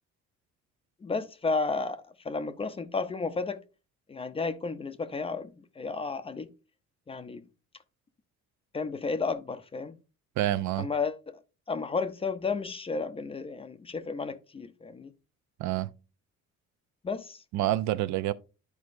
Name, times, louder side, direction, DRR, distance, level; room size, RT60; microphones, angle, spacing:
voice 1, 1.0-3.6 4.1-6.5 7.1-7.4 8.7-10.0 10.8-11.4 11.7-15.1 17.0-17.4, left 4 dB, 20° left, 0.5 m, -32 dB
voice 2, 10.4-10.9 15.6-15.9 17.5-18.3, right 14 dB, 75° right, 0.5 m, -27 dB
11.5 x 4.7 x 2.6 m
cardioid pair, 150°, 29 cm